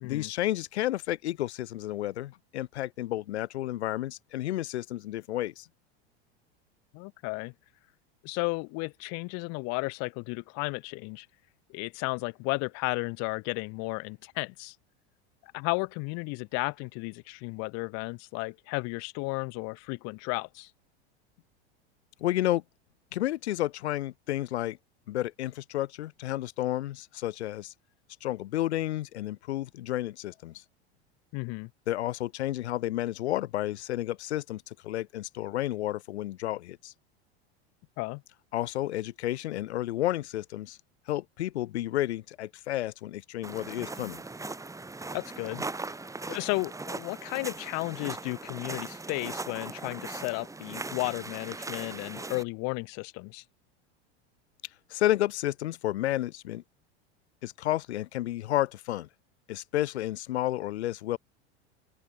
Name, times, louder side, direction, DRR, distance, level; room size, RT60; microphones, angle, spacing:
voice 1, 0.0-5.7 22.2-22.6 23.1-24.8 25.1-27.7 28.2-30.6 31.9-36.9 38.5-40.8 41.1-44.2 54.9-56.6 57.4-59.1 59.5-61.2, left 14 dB, 85° left, 0.8 m, -31 dB
voice 2, 6.9-7.5 8.2-11.3 11.7-14.8 15.4-20.7 31.3-31.7 38.0-38.2 45.1-45.6 46.3-53.4, left 32 dB, 50° left, 0.8 m, -33 dB
sound 1, 43.4-52.4, right 3 dB, 10° right, 1.9 m, -39 dB
open air
hypercardioid pair, 100°, 32 cm